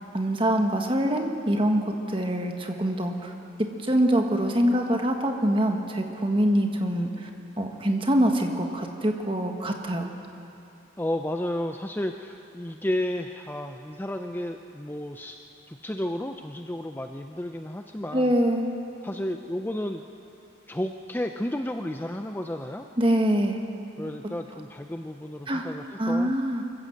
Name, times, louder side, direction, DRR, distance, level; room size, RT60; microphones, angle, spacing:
voice 1, 0.1-3.3 3.6-7.3 7.6-10.1 18.1-18.8 23.0-23.6 25.5-25.6 26.0-26.6, equal, 25° right, 3 dB, 1.6 m, -24 dB
voice 2, 11.0-15.4 15.7-18.3 19.0-20.0 20.7-22.9 24.0-26.3, left 1 dB, 10° left, 5 dB, 0.5 m, -32 dB
24.0 x 15.0 x 7.8 m, 2.8 s
head